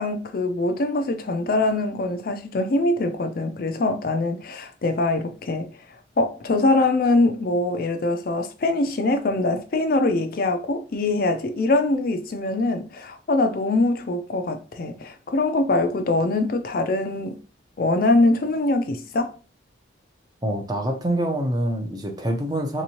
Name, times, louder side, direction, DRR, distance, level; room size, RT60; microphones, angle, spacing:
voice 1, 0.0-5.7 6.2-17.4 17.8-19.3, left 2 dB, 50° left, 0.4 m, -23 dB
voice 2, 20.4-22.8, right 1 dB, 20° right, 0.6 m, -25 dB
3.4 x 3.0 x 2.8 m
head